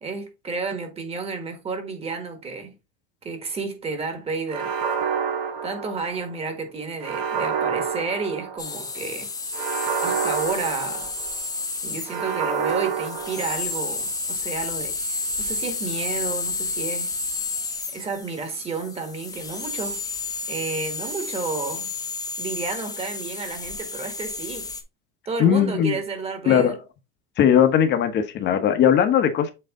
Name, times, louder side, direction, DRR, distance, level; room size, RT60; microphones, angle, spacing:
voice 1, 0.0-2.7 3.2-4.7 5.6-9.3 10.0-11.1 11.8-17.1 17.9-20.0 20.5-21.9 22.4-24.7 25.2-26.8, right 4 dB, 20° right, 1.5 m, -31 dB
sound 1, 4.5-6.4 7.0-8.8 9.5-11.4 12.1-13.9, right 6 dB, 60° right, 1.9 m, -28 dB
sound 2, 8.6-24.8, left 3 dB, 10° left, 0.7 m, -31 dB
voice 2, 25.4-26.0 26.5-26.7 27.4-29.5, left 9 dB, 35° left, 1.0 m, -19 dB
7.8 x 3.2 x 3.8 m
cardioid pair, 145°, 30 cm